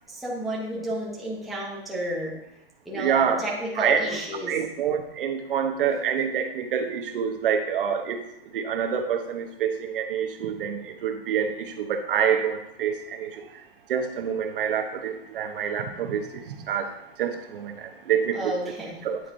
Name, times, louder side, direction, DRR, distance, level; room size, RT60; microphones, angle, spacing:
voice 1, 0.1-2.3 2.9-4.6 18.3-19.0, right 1 dB, ahead, -6 dB, 0.8 m, -31 dB
voice 2, 2.9-3.4 3.8-4.2 4.5-8.2 8.5-13.5 13.9-16.9 17.2-18.5 19.0-19.2, right 7 dB, 60° right, 6 dB, 0.8 m, -27 dB
9.3 x 4.2 x 2.6 m, 0.84 s
supercardioid pair, 170°, 30 cm